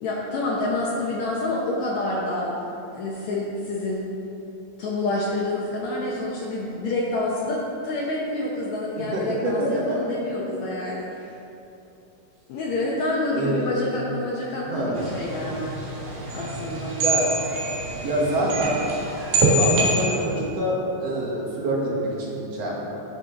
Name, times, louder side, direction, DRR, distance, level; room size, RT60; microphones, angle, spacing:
voice 1, 0.0-2.5 2.9-4.1 4.8-11.2 12.5-15.9 16.3-17.0, left 2 dB, 70° left, -4 dB, 1.8 m, -28 dB
voice 2, 9.0-10.0 13.4-13.7 14.7-15.0 17.0-17.3 18.0-18.8 19.6-22.8, right 1 dB, 60° right, -4 dB, 2.0 m, -26 dB
sound 1, 15.0-20.0, right 2 dB, 90° right, 3.6 m, -25 dB
11.0 x 7.1 x 3.7 m, 2.9 s
omnidirectional pair, 4.1 m